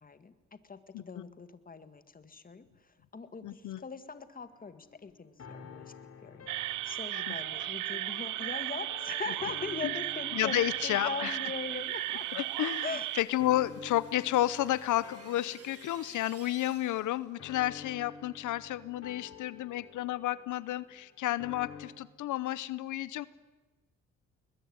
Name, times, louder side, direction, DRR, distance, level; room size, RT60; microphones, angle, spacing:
voice 1, 0.0-5.9 6.2-12.3 12.8-13.1, left 4 dB, 30° left, 11 dB, 1.9 m, -41 dB
voice 2, 3.4-3.8 7.3-7.4 7.6-7.7 9.8-9.9 10.3-11.4 12.3-12.9 13.1-23.3, left 14 dB, 80° left, 18 dB, 0.9 m, -31 dB
sound 1, 4.4-21.9, left 7 dB, 50° left, 3.4 m, -51 dB
sound 2, 6.5-13.2, right 16 dB, 90° right, 0.8 m, -35 dB
sound 3, 11.3-17.3, right 6 dB, 50° right, 3.0 m, -57 dB
21.5 x 21.0 x 9.6 m, 1.2 s
cardioid pair, 90°, 30 cm